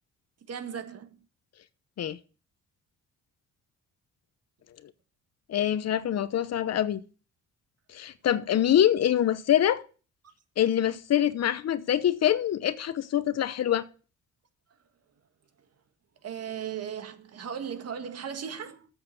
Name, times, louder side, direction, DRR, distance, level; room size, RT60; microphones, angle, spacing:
voice 1, 0.5-1.1 16.2-18.9, right 8 dB, 55° right, 1.7 m, -37 dB
voice 2, 5.5-7.0 7.9-9.8 10.6-13.8, left 11 dB, 60° left, 0.9 m, -25 dB
7.9 x 6.8 x 8.3 m
cardioid pair, 90°, 30 cm